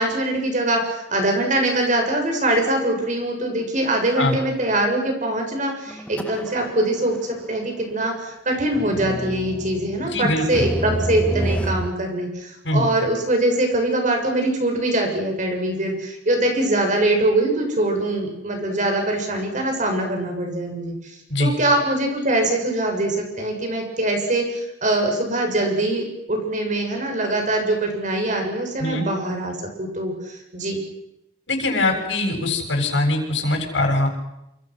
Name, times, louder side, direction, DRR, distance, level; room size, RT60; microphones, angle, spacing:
voice 1, 0.0-30.8, right 1 dB, 40° right, 3 dB, 7.2 m, -23 dB
sound 1, 5.9-6.9 7.1-7.2 8.7-11.9, equal, 5° left, 1.7 m, -28 dB
voice 2, 10.1-10.7 12.6-12.9 21.3-21.5 28.8-29.1 31.5-34.1, left 2 dB, 75° left, 1 dB, 7.4 m, -22 dB
28.0 x 27.5 x 6.4 m, 0.84 s
head